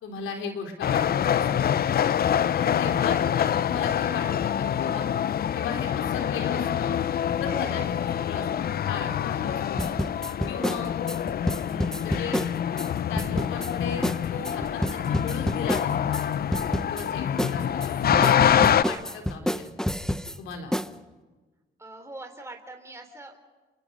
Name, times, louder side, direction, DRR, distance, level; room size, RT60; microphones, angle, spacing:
voice 1, 0.0-1.8 2.5-5.1 5.5-7.0 7.4-10.0 10.5-10.9 11.6-12.4 13.1-16.2 16.9-19.6 20.4-20.7, left 5 dB, 85° left, 4 dB, 4.0 m, -37 dB
sound 1, 0.8-18.8, left 9 dB, 50° left, 0.6 m, -26 dB
sound 2, 9.8-12.9 13.2-13.7 14.0-14.2 14.4-16.2 16.5-17.1 17.4-20.4 20.7-20.9, equal, 5° left, 0.9 m, -28 dB
voice 2, 21.8-23.4, right 2 dB, 15° right, 4 dB, 3.4 m, -42 dB
29.5 x 23.5 x 5.5 m, 1.3 s
cardioid pair, 90°, 20 cm